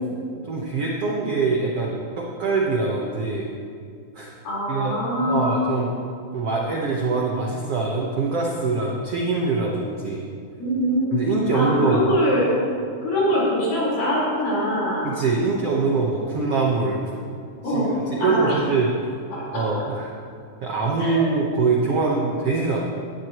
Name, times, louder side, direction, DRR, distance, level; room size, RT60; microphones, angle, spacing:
voice 1, 0.5-3.5 4.1-4.3 4.7-4.9 5.3-5.9 6.3-10.2 11.1-12.2 15.0-17.1 17.6-18.9 19.5-20.1 20.6-22.8, right 4 dB, 65° right, -2 dB, 1.5 m, -23 dB
voice 2, 4.4-5.5 10.6-11.2 11.5-12.6 13.0-15.1 17.6-18.6 19.3-19.8 21.0-21.2, equal, 65° left, -7 dB, 5.9 m, -23 dB
17.5 x 14.0 x 3.0 m, 2.3 s
omnidirectional pair, 4.2 m